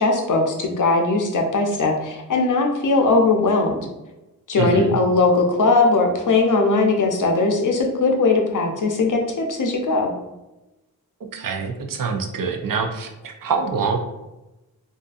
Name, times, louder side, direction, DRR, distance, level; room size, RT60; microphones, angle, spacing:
voice 1, 0.0-3.8 4.5-10.1, left 3 dB, 60° left, 2 dB, 0.5 m, -19 dB
voice 2, 4.6-5.0 11.3-14.0, right 5 dB, 65° right, 4 dB, 0.5 m, -25 dB
2.6 x 2.5 x 2.3 m, 1.0 s
wide cardioid pair, 75°, 36 cm